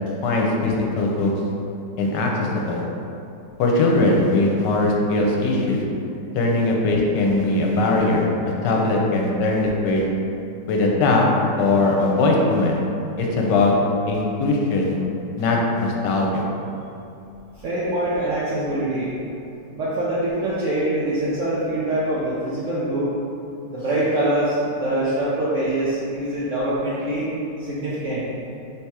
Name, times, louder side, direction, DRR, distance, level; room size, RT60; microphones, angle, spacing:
voice 1, 0.2-1.3 2.0-2.3 2.5-2.8 3.6-5.8 6.3-8.3 8.6-10.0 10.7-11.2 11.6-12.8 13.2-13.7 14.1-15.0 15.4-16.4, left 2 dB, 80° left, -1 dB, 1.2 m, -20 dB
voice 2, 17.6-19.1 19.7-23.1 23.7-27.3 27.6-28.2, right 1 dB, 70° right, -8 dB, 0.7 m, -24 dB
3.4 x 2.8 x 4.6 m, 2.7 s
omnidirectional pair, 1.9 m